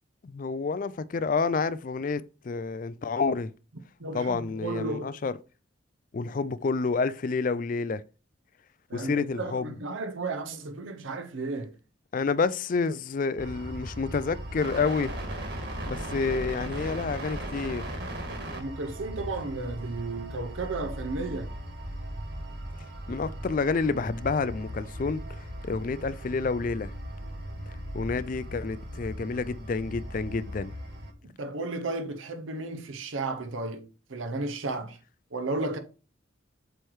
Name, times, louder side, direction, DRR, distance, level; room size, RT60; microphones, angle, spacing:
voice 1, 0.2-3.5 4.1-5.3 6.1-8.0 8.9-9.7 12.1-15.1 15.9-17.9 23.1-26.9 27.9-30.7, left 4 dB, 40° left, 0.4 m, -29 dB
voice 2, 4.0-5.1 8.9-11.7 18.5-21.5 31.2-35.0 35.3-35.8, right 3 dB, 80° right, 0.8 m, -34 dB
sound 1, 13.4-31.1, equal, 55° right, 1.6 m, -38 dB
7.7 x 3.2 x 4.7 m
head